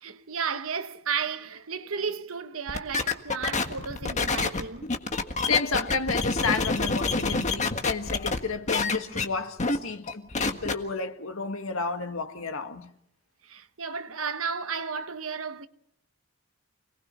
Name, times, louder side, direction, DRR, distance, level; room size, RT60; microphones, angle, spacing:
voice 1, 0.0-4.9 13.4-15.7, right 6 dB, 85° right, 1.2 m, -33 dB
sound 1, 2.7-8.4 8.7-9.3 9.6-9.8 10.1-10.7, left 3 dB, 35° left, 1.6 m, -27 dB
voice 2, 5.4-12.9, left 4 dB, 80° left, 1.8 m, -31 dB
29.5 x 19.5 x 5.6 m
head